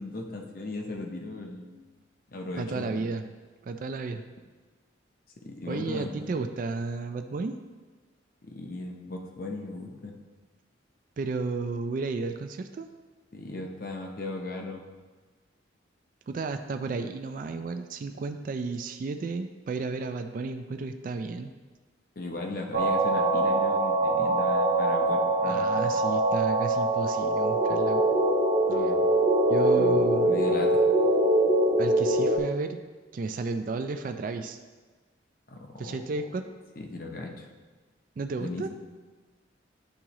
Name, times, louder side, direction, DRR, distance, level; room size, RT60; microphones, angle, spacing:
voice 1, 0.0-1.7 2.3-2.9 5.4-6.3 8.4-10.1 13.3-14.8 22.2-25.9 28.7-29.0 29.7-30.8 35.5-36.3 36.8-37.5 38.4-38.7, left 2 dB, 50° left, 2 dB, 0.7 m, -37 dB
voice 2, 2.6-3.3 3.6-4.2 5.7-7.6 11.2-12.9 16.3-21.5 25.4-28.0 29.5-30.4 31.8-32.8 33.1-34.6 35.8-36.4 38.2-38.7, right 3 dB, 45° right, 7 dB, 0.3 m, -33 dB
sound 1, 22.7-32.4, right 1 dB, 85° right, 0.8 m, -23 dB
10.0 x 3.6 x 3.0 m, 1.3 s
head